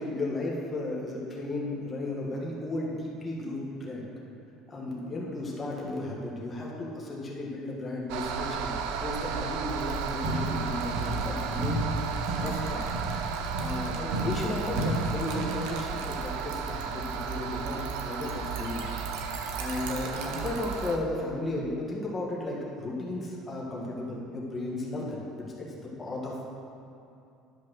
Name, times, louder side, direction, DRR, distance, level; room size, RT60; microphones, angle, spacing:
voice 1, 0.0-4.0 4.7-8.7 9.0-11.8 12.4-12.8 13.6-18.9 19.6-25.7 26.0-26.4, left 2 dB, 15° left, -4 dB, 1.5 m, -34 dB
sound 1, 8.1-21.0, right 6 dB, 70° right, 0.6 m, -34 dB
sound 2, 9.7-20.9, right 5 dB, 90° right, 1.2 m, -45 dB
sound 3, 10.2-11.3 11.6-15.7, right 1 dB, 55° right, 2.1 m, -33 dB
11.0 x 5.3 x 6.3 m, 2.7 s
cardioid pair, 175°, 0 cm